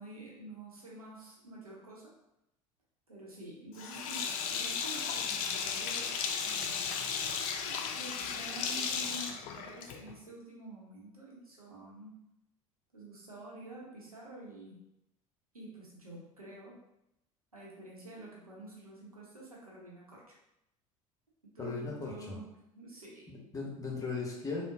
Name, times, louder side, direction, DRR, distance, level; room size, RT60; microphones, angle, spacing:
voice 1, 0.0-2.1 3.1-6.8 7.6-12.2 12.9-14.8 15.5-16.8 17.5-20.4 21.5-22.5 22.7-23.3, right 2 dB, 90° right, -4 dB, 0.7 m, -48 dB
Sink (filling or washing), 3.8-10.2, left 6 dB, 50° left, 0.4 m, -35 dB
voice 2, 21.6-22.4 23.3-24.6, left 4 dB, 20° left, -2 dB, 0.9 m, -37 dB
3.6 x 2.1 x 2.5 m, 0.84 s
figure-of-eight pair, 65°, 18 cm